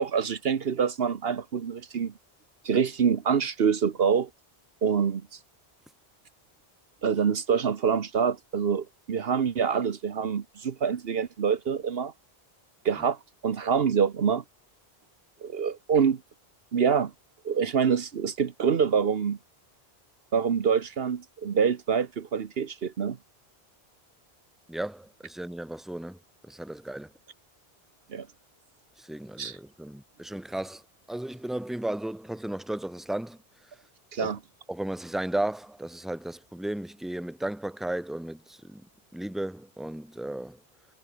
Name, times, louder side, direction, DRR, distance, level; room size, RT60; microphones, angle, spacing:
voice 1, 0.0-2.1 2.6-4.3 4.8-5.4 7.0-12.1 12.8-13.2 13.4-14.4 15.4-16.2 16.7-17.1 17.4-19.4 20.3-23.2 28.1-28.3 29.4-29.6 34.1-34.4, right 6 dB, 70° right, 1.2 m, -26 dB
voice 2, 24.7-27.1 29.0-30.8 31.1-33.4 33.7-33.8 34.2-34.3 34.7-38.9 39.1-40.6, right 1 dB, ahead, 1.6 m, -34 dB
omnidirectional pair, 1.0 m